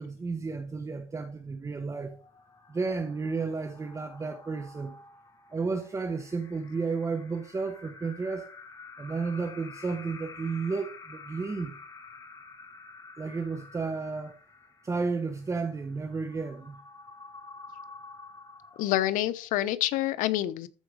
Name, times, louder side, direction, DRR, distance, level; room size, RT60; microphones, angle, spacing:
voice 1, 0.0-2.2 2.7-4.9 5.5-8.5 9.0-11.8 13.2-14.4 14.8-16.8, right 4 dB, 20° right, 1.2 m, -32 dB
sound 1, 2.1-19.5, left 4 dB, 25° left, 4.2 m, -50 dB
voice 2, 18.8-20.7, left 14 dB, 75° left, 1.0 m, -27 dB
14.0 x 4.9 x 5.0 m
cardioid pair, 115°, 14 cm